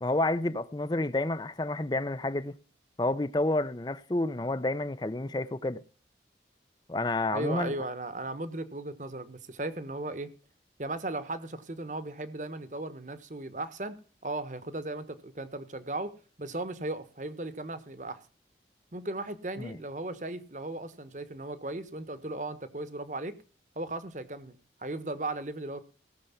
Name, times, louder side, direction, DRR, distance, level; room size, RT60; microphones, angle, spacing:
voice 1, 0.0-2.5 3.0-5.8 6.9-7.7 19.6-19.8, left 2 dB, 25° left, 0.6 m, -29 dB
voice 2, 7.3-10.3 10.8-18.2 18.9-23.3 23.8-25.8, right 2 dB, 45° right, 1.2 m, -36 dB
17.5 x 6.8 x 5.7 m
head